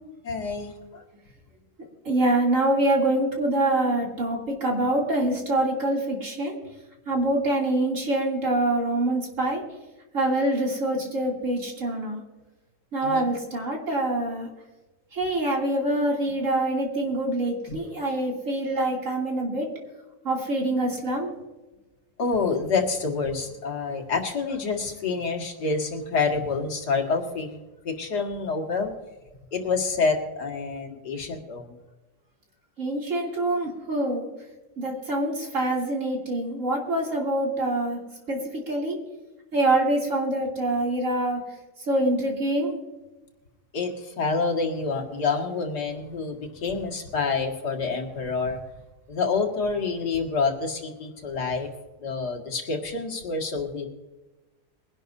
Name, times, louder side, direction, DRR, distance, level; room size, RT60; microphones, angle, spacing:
voice 1, 0.2-1.0 13.0-13.3 17.7-17.8 22.2-27.6 27.8-28.9 29.5-31.7 43.7-48.6 49.1-51.7 52.0-53.9, left 4 dB, 75° left, 2 dB, 2.4 m, -27 dB
voice 2, 2.0-6.5 7.1-9.6 10.1-12.2 12.9-14.5 15.1-19.7 20.2-21.3 32.8-34.3 34.8-38.0 38.3-38.4 38.7-39.0 39.5-41.4 41.9-42.7, right 1 dB, 50° right, -1 dB, 3.2 m, -25 dB
22.5 x 11.5 x 2.7 m, 1.1 s
omnidirectional pair, 1.8 m